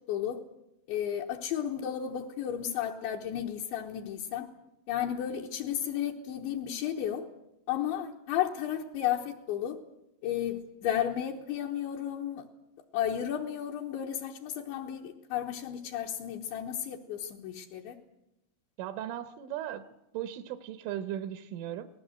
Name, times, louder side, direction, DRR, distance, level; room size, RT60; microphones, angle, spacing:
voice 1, 0.1-0.4 0.9-4.5 4.9-7.3 7.7-9.8 10.2-12.4 12.9-18.0, left 10 dB, 70° left, -2 dB, 3.4 m, -33 dB
voice 2, 18.8-19.8 20.1-21.9, right 11 dB, 80° right, 10 dB, 3.4 m, -37 dB
27.5 x 19.5 x 8.0 m, 0.86 s
omnidirectional pair, 5.8 m